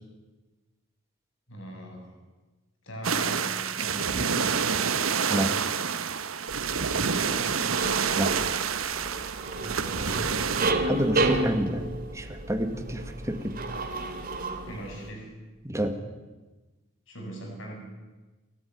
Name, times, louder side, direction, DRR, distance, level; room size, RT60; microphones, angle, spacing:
voice 1, 1.5-2.2 2.8-4.4 6.9-7.6 9.6-10.4 14.7-15.3 17.1-17.9, right 1 dB, 65° left, 1 dB, 7.4 m, -40 dB
sound 1, 3.0-10.7, right 6 dB, 85° right, 1.2 m, -28 dB
sound 2, 6.5-15.1, right 2 dB, 45° right, 2.9 m, -32 dB
voice 2, 10.9-11.9 12.1-13.6 15.6-16.0, equal, 15° right, 6 dB, 2.0 m, -28 dB
29.0 x 13.0 x 9.8 m, 1.2 s
head